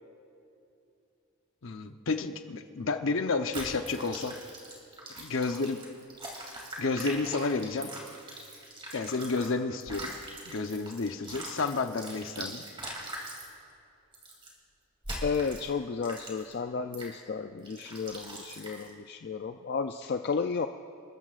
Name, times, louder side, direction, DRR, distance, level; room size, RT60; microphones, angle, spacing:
voice 1, 1.6-4.4 5.2-5.8 6.8-7.9 8.9-10.1 10.4-12.6, left 3 dB, 65° left, 7 dB, 0.8 m, -31 dB
sound 1, 3.5-9.5 9.8-13.5 14.1-14.5 15.0-15.7 16.0-16.5 16.9-17.1 17.6-18.9, right 1 dB, 25° right, 2.7 m, -42 dB
voice 2, 15.2-20.7, left 5 dB, 50° left, 6 dB, 0.4 m, -33 dB
27.5 x 14.0 x 2.5 m, 2.7 s
head